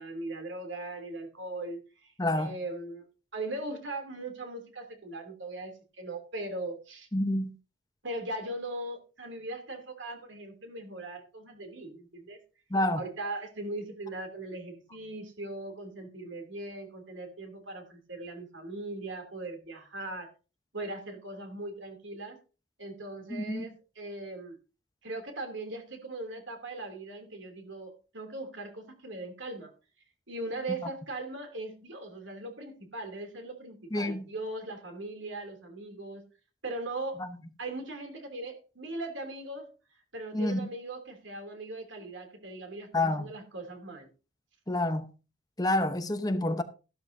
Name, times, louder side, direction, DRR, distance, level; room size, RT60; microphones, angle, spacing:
voice 1, 0.0-3.0 3.3-7.1 8.0-12.4 13.0-20.3 20.7-22.4 22.8-24.6 25.0-29.7 30.3-36.2 36.6-37.2 37.6-39.7 40.1-44.1, right 2 dB, 80° right, 2.8 m, -39 dB
voice 2, 2.2-2.5 7.1-7.6 12.7-13.0 23.3-23.7 33.9-34.3 37.2-37.3 40.3-40.7 42.9-43.3 44.7-45.1 45.6-46.6, left 1 dB, 20° left, 0.9 m, -28 dB
13.5 x 12.5 x 2.7 m
head